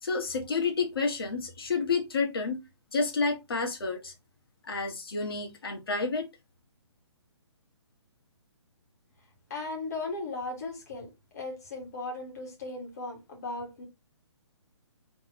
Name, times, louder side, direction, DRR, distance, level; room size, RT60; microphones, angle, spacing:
voice 1, 0.0-2.6 2.9-4.1 4.6-6.3, left 4 dB, 50° left, 1.6 m, -30 dB
voice 2, 9.5-13.9, left 3 dB, 35° left, 2.1 m, -37 dB
4.3 x 3.6 x 3.0 m
hypercardioid pair, 175°, 15 cm